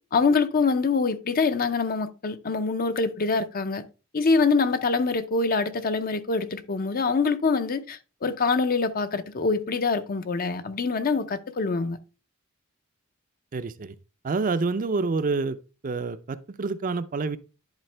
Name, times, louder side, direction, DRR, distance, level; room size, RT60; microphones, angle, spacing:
voice 1, 0.1-3.9 4.1-12.0, left 4 dB, 45° left, 0.5 m, -25 dB
voice 2, 13.5-13.9 14.2-15.6 15.8-17.4, right 4 dB, 40° right, 0.4 m, -27 dB
10.5 x 4.2 x 3.3 m
head